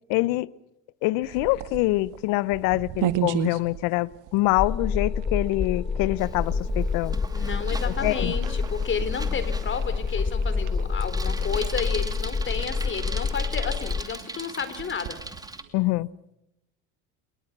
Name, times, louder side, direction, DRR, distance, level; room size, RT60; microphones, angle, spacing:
voice 1, 0.1-0.5 1.0-7.2 7.8-8.3 15.7-16.1, left 20 dB, 70° left, 0.9 m, -25 dB
Mac and Cheese Swirling Around, 1.2-15.7, right 13 dB, 65° right, 1.9 m, -37 dB
sound 1, 4.6-14.0, left 5 dB, 15° left, 0.8 m, -28 dB
Bicycle, 6.2-15.6, right 2 dB, 10° right, 2.6 m, -40 dB
voice 2, 7.3-15.2, left 6 dB, 35° left, 4.0 m, -32 dB
28.0 x 23.0 x 6.1 m
supercardioid pair, 85°, 34 cm